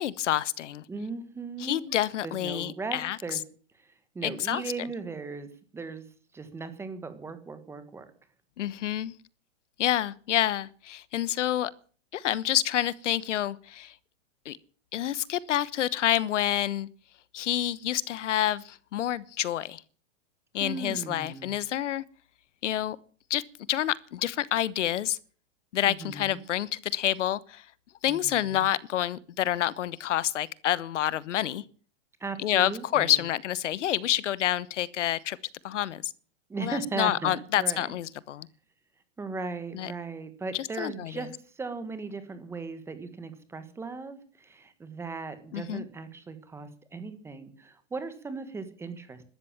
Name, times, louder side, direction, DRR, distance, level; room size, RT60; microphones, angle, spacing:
voice 1, 0.0-0.8 1.6-3.2 4.2-4.6 8.6-9.1 9.8-11.7 12.1-13.9 14.4-14.6 14.9-16.9 17.3-19.8 20.5-22.0 22.6-23.0 23.3-23.4 23.7-25.2 25.7-27.6 28.0-31.6 32.4-35.4 35.6-36.1 36.6-38.5 39.7-39.9 40.6-41.1 45.5-45.8, left 12 dB, 75° left, 1.1 m, -28 dB
voice 2, 0.9-1.9 2.2-3.4 3.7-8.1 20.6-21.6 25.8-26.4 28.1-28.7 32.2-33.2 36.5-37.9 39.2-49.2, right 4 dB, 5° right, 1.3 m, -38 dB
14.5 x 13.0 x 7.3 m
supercardioid pair, 165°, 36 cm